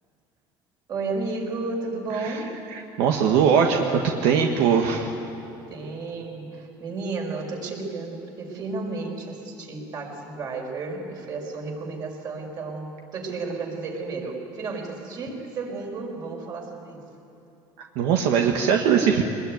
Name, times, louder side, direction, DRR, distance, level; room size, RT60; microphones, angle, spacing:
voice 1, 0.9-2.5 5.7-17.0, right 3 dB, 45° right, 0 dB, 5.4 m, -32 dB
voice 2, 2.7-5.1 17.9-19.2, right 7 dB, 80° right, 2 dB, 1.6 m, -21 dB
24.0 x 21.0 x 9.4 m, 2.7 s
cardioid pair, 135°, 10 cm